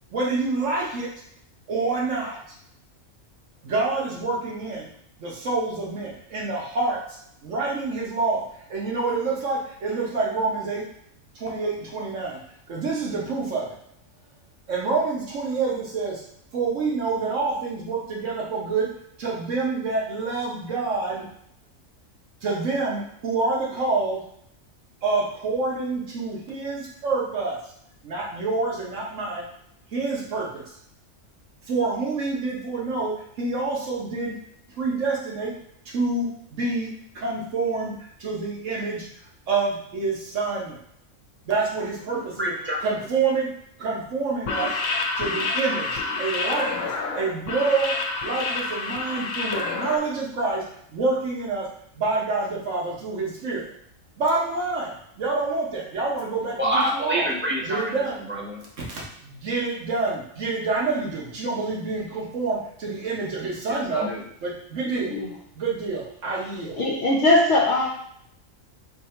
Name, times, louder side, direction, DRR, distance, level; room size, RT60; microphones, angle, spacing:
voice 1, 0.1-1.1 1.7-2.4 3.6-4.9 5.2-7.2 7.4-8.4 8.7-10.8 11.3-12.4 12.7-13.7 14.7-16.2 16.5-18.9 19.2-21.2 22.4-24.2 25.0-27.6 28.0-29.4 29.9-30.6 31.7-34.3 34.8-35.5 35.9-36.9 37.1-39.0 39.5-40.8 41.4-42.5 42.8-43.5 43.8-44.8 45.2-47.9 48.2-50.6 50.9-51.6 52.0-53.7 54.2-57.3 57.6-58.2 58.9-64.1 64.4-65.1 65.5-66.8, right 3 dB, 65° right, -4 dB, 1.5 m, -27 dB
voice 2, 42.1-42.8 56.6-58.7 63.7-64.2, right 1 dB, 10° right, -5 dB, 0.9 m, -27 dB
sound 1, 44.4-50.0, left 3 dB, 85° left, 1.1 m, -28 dB
voice 3, 66.7-67.9, left 2 dB, 65° left, -4 dB, 1.0 m, -20 dB
4.1 x 2.7 x 4.4 m, 0.71 s
omnidirectional pair, 1.4 m